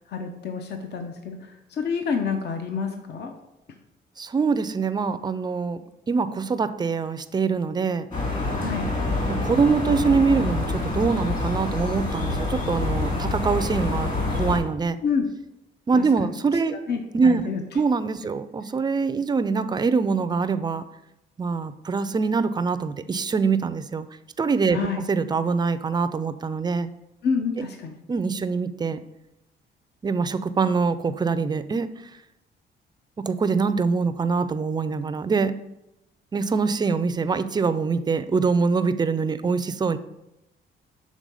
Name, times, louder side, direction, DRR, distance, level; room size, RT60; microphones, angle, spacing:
voice 1, 0.1-3.3 8.6-8.9 15.0-15.3 15.9-16.3 16.7-17.6 24.7-25.1 27.2-28.0, left 5 dB, 60° left, 5 dB, 0.7 m, -28 dB
voice 2, 4.2-5.8 6.1-8.1 9.3-15.0 15.9-16.8 17.1-17.5 17.7-20.8 21.4-24.1 24.4-26.9 27.6-27.7 28.1-29.0 30.0-31.9 33.2-35.6 36.3-40.0, right 4 dB, 20° right, 12 dB, 0.4 m, -24 dB
sound 1, 8.1-14.6, left 2 dB, 40° left, 2.3 m, -26 dB
6.2 x 3.6 x 5.3 m, 0.88 s
cardioid pair, 90°, 20 cm